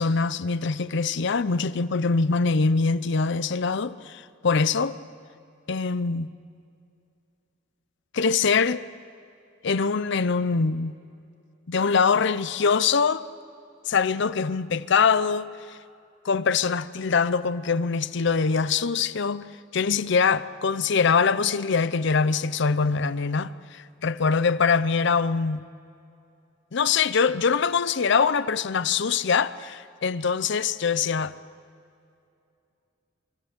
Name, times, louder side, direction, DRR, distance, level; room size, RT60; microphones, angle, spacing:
voice 1, 0.0-4.9 5.7-6.3 8.1-8.8 9.6-10.9 11.7-13.3 13.9-15.8 16.2-19.5 19.7-25.6 26.7-31.3, left 5 dB, 65° left, 0.6 m, -23 dB
23.5 x 15.0 x 8.0 m
head